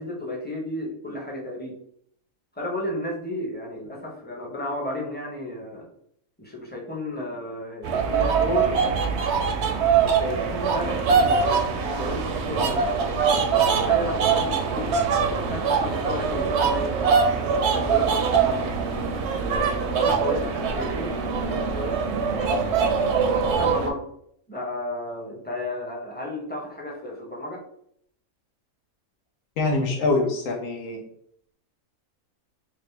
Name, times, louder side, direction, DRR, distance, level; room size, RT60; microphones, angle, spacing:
voice 1, 0.0-1.8 2.6-5.9 6.4-9.2 10.0-11.6 12.0-12.9 13.4-14.9 15.2-17.2 17.6-18.7 19.3-22.8 23.5-24.0 24.5-27.6, left 1 dB, 10° left, -2 dB, 0.6 m, -33 dB
sound 1, 7.8-23.9, right 5 dB, 65° right, 0.7 m, -23 dB
voice 2, 29.6-31.0, left 3 dB, 75° left, 2 dB, 1.3 m, -24 dB
4.7 x 2.0 x 3.3 m, 0.69 s
omnidirectional pair, 1.5 m